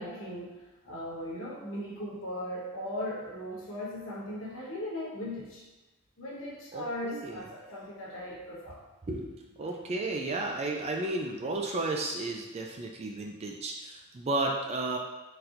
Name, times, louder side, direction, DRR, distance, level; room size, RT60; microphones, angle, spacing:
voice 1, 0.0-5.6 6.2-8.8 9.6-9.7, left 1 dB, 60° left, -5 dB, 1.2 m, -38 dB
voice 2, 6.7-7.4 9.1-15.0, right 2 dB, 30° right, 1 dB, 0.3 m, -33 dB
4.2 x 4.1 x 2.5 m, 1.1 s
head